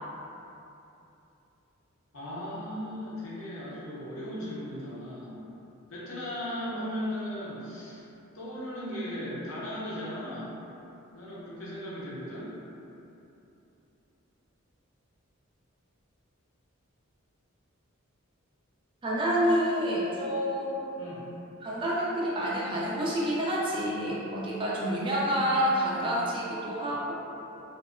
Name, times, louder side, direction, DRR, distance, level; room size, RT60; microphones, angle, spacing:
voice 1, 2.1-5.4 5.9-8.1 8.3-10.6 11.1-12.5 21.0-21.3, equal, 75° left, -8 dB, 0.7 m, -37 dB
voice 2, 19.0-20.8 21.6-27.1, equal, 25° right, -6 dB, 0.4 m, -28 dB
2.7 x 2.1 x 2.4 m, 2.8 s
head